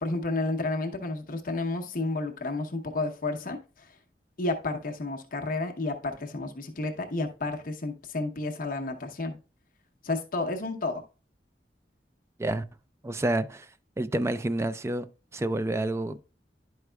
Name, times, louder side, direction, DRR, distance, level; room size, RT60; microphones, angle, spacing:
voice 1, 0.0-4.0 4.4-9.4 10.0-11.0, left 2 dB, 50° left, 0.8 m, -31 dB
voice 2, 13.0-13.7 14.0-15.1 15.3-16.2, right 1 dB, 15° right, 0.4 m, -28 dB
11.0 x 4.7 x 2.2 m
head